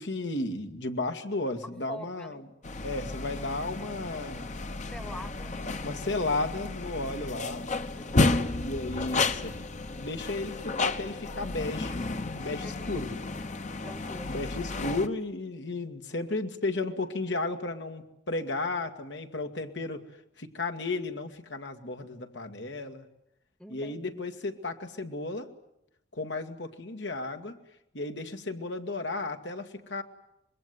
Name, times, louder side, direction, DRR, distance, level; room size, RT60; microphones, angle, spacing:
voice 1, 0.0-2.4 2.8-4.5 5.8-7.7 8.6-9.6 9.9-11.9 12.4-13.1 14.3-20.0 20.4-23.0 23.7-25.5 26.1-27.6 27.9-30.0, left 2 dB, 80° left, 5 dB, 2.0 m, -34 dB
voice 2, 1.9-2.4 4.9-5.7 7.9-8.4 12.6-13.1 13.8-14.3 23.6-24.3, equal, 5° left, 12 dB, 1.1 m, -45 dB
sound 1, 2.6-15.1, left 3 dB, 40° left, 1.0 m, -32 dB
25.5 x 21.5 x 9.5 m, 0.79 s
head